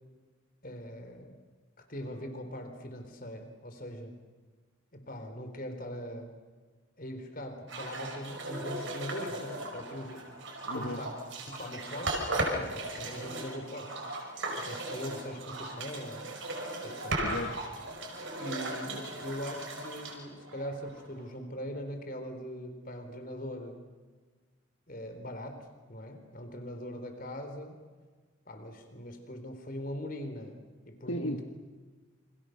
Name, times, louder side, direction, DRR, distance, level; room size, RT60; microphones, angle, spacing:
voice 1, 0.6-1.4 1.8-4.1 4.9-6.3 7.0-10.2 10.7-13.9 14.5-16.3 16.8-17.3 18.4-23.8 24.9-25.6 25.9-27.8 28.5-30.6 30.8-31.4, equal, 45° left, 7 dB, 4.1 m, -41 dB
sound 1, 7.7-21.2, right 1 dB, 65° right, 5.4 m, -37 dB
voice 2, 10.6-11.1 17.2-17.5 31.1-31.4, equal, 70° left, 4 dB, 1.7 m, -35 dB
28.5 x 27.0 x 6.7 m, 1.4 s
head